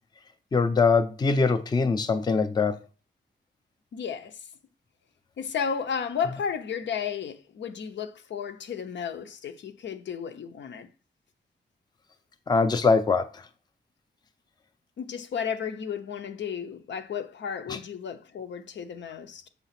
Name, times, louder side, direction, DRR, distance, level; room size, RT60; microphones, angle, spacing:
voice 1, 0.5-2.8 12.5-13.4 17.7-17.8, left 4 dB, 20° left, 0.5 m, -23 dB
voice 2, 3.9-4.5 5.4-10.9 15.0-19.5, left 7 dB, 85° left, 0.8 m, -33 dB
7.0 x 3.6 x 5.8 m
wide cardioid pair, 175°, 18 cm